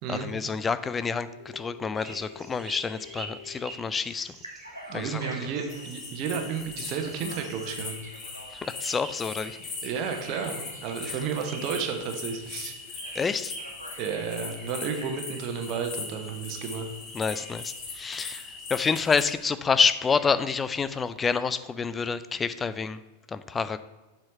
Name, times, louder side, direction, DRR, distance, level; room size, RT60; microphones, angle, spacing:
voice 1, 0.1-1.3 1.5-4.3 4.9-5.2 8.6-9.6 11.1-11.2 13.1-13.5 17.1-23.0 23.3-23.8, left 5 dB, 15° left, 13 dB, 0.4 m, -28 dB
Telephone, 1.3-3.6 4.1-5.9 6.8-9.1 9.9-11.3 13.0-13.3 13.5-14.3 14.8-15.3, left 1 dB, 85° left, 1.1 m, -46 dB
sound 1, 1.9-21.1, right 2 dB, 15° right, 1.7 m, -48 dB
voice 2, 4.9-7.9 9.8-13.0 14.0-16.9, right 6 dB, 40° right, 4 dB, 1.0 m, -32 dB
sound 2, 5.7-19.2, left 4 dB, 35° left, 1.6 m, -40 dB
7.5 x 4.5 x 5.5 m, 1.2 s
figure-of-eight pair, 90°, 0 cm